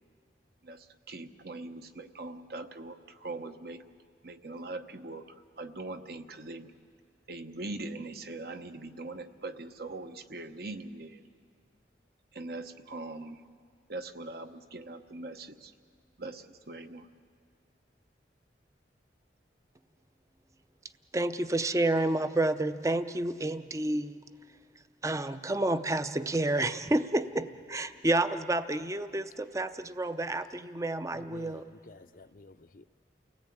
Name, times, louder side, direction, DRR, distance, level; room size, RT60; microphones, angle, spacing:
voice 1, 0.6-3.8 4.2-6.7 7.3-11.2 12.3-13.4 13.9-15.7 16.2-17.1, right 2 dB, 60° right, 8 dB, 1.0 m, -41 dB
voice 2, 21.1-24.2 25.0-31.7, right 2 dB, 20° right, 11 dB, 0.6 m, -30 dB
voice 3, 31.1-32.9, left 2 dB, 50° left, 12 dB, 0.6 m, -51 dB
29.5 x 18.0 x 8.6 m, 2.1 s
head